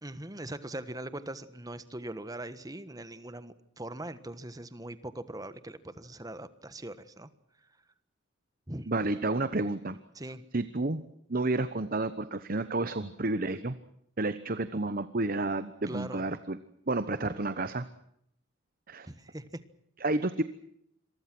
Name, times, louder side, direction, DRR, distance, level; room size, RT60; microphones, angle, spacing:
voice 1, 0.0-7.3 8.7-8.9 10.1-10.4 15.9-16.3 19.1-19.6, right 1 dB, 20° right, 13 dB, 1.4 m, -41 dB
voice 2, 8.9-10.0 10.5-11.0 11.3-13.8 14.2-16.6 16.9-17.8 18.9-19.1 20.0-20.4, right 2 dB, 45° right, 12 dB, 1.0 m, -30 dB
27.0 x 23.5 x 6.2 m, 0.73 s
head